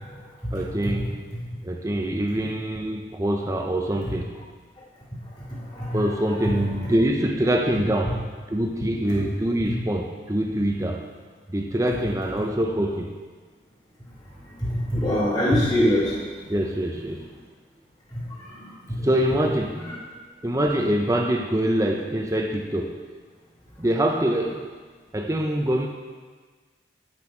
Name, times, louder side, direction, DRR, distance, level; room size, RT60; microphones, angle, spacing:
voice 1, 0.5-1.2 1.6-4.4 5.9-8.2 8.5-11.0 11.5-13.2 16.5-17.3 19.0-19.8 20.4-23.0 23.8-24.6 25.1-25.9, right 1 dB, 15° right, 3 dB, 0.6 m, -24 dB
voice 2, 5.7-6.0 14.6-16.1 18.1-18.2 18.6-18.7 19.8-19.9, equal, 25° left, -7 dB, 3.1 m, -23 dB
10.5 x 8.1 x 4.4 m, 1.4 s
head